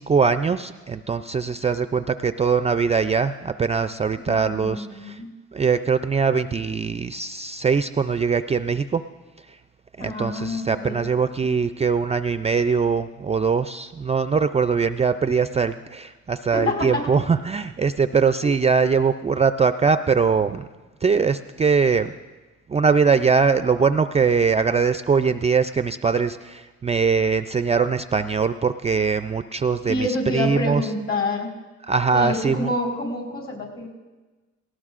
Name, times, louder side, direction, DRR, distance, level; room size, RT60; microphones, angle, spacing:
voice 1, 0.0-5.2 5.5-9.0 10.0-20.7 21.0-22.1 22.7-30.8 31.9-32.7, right 5 dB, 20° right, 10 dB, 0.3 m, -22 dB
voice 2, 4.2-5.3 10.0-11.0 16.5-17.1 18.4-18.5 29.9-31.5 32.1-33.9, left 2 dB, 55° left, -2 dB, 4.7 m, -27 dB
19.0 x 18.0 x 2.5 m, 1.2 s
cardioid pair, 90°, 30 cm